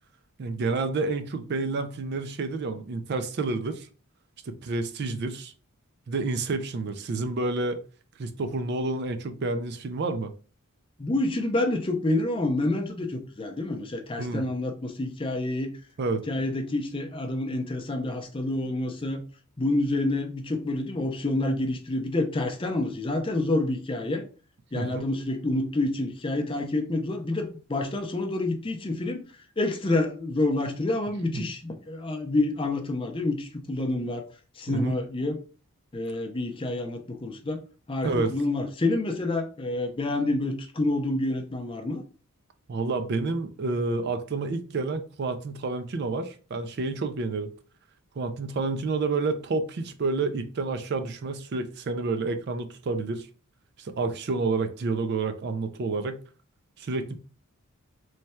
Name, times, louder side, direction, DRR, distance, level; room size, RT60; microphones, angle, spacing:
voice 1, 0.4-3.9 4.5-5.5 6.1-7.8 8.2-10.3 14.2-14.5 16.0-16.2 24.7-25.1 31.3-31.4 34.7-35.0 38.0-38.3 42.7-47.5 48.2-53.3 53.8-56.2 56.8-57.2, right 3 dB, 50° right, 0.4 m, -29 dB
voice 2, 11.0-15.7 16.3-19.2 19.6-24.2 24.7-29.2 29.6-34.3 34.6-35.4 35.9-37.6 37.9-42.0, left 2 dB, 25° left, 0.5 m, -28 dB
3.2 x 2.3 x 4.2 m
head